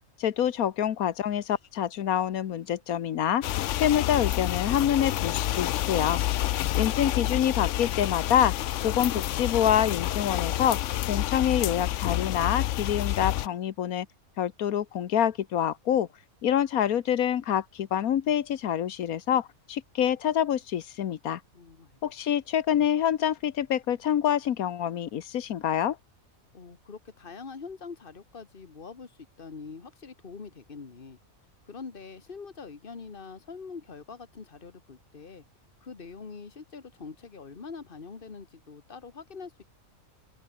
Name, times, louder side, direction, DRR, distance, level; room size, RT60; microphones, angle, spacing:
voice 1, 0.2-3.4 3.7-6.2 6.7-14.1 14.4-16.1 16.4-21.4 22.0-26.0, left 10 dB, 90° left, 1.4 m, -26 dB
sound 1, 3.4-13.5, left 14 dB, 65° left, 0.8 m, -29 dB
voice 2, 21.5-22.0 26.5-31.2 31.6-35.4 35.8-39.6, left 5 dB, 40° left, 1.9 m, -44 dB
open air
omnidirectional pair, 1.5 m